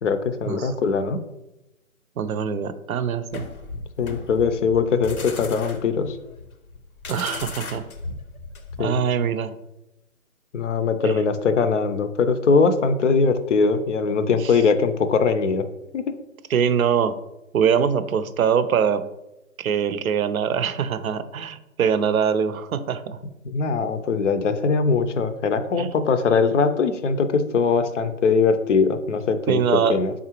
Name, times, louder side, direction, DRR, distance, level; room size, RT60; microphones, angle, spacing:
voice 1, 0.0-1.2 4.0-6.2 8.8-9.0 10.5-15.7 15.9-16.0 23.4-29.6 29.9-30.1, left 5 dB, 60° left, 10 dB, 0.5 m, -21 dB
voice 2, 2.2-3.4 7.1-7.8 8.8-9.5 11.0-11.2 14.3-14.5 16.5-17.2 17.5-19.1 19.6-23.2 25.8-25.9 29.5-30.2, right 7 dB, 80° right, 13 dB, 0.5 m, -23 dB
sound 1, 3.3-9.0, left 3 dB, 85° left, 0.8 m, -36 dB
4.1 x 3.6 x 2.9 m, 0.92 s
figure-of-eight pair, 145°, 42 cm